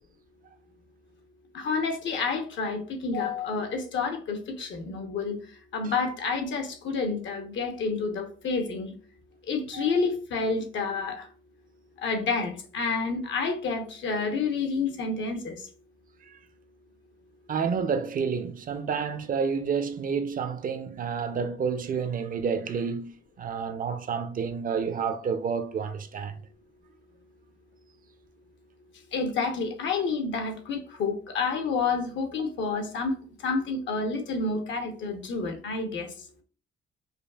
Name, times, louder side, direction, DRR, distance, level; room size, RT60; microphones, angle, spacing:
voice 1, 1.5-5.4 5.7-8.9 9.5-11.3 12.0-15.6 29.1-33.1 33.4-36.1, left 4 dB, 70° left, 0.8 m, -29 dB
voice 2, 17.5-23.1 23.4-26.4, right 6 dB, 45° right, 0.5 m, -29 dB
5.0 x 2.3 x 2.3 m
cardioid pair, 90°, 20 cm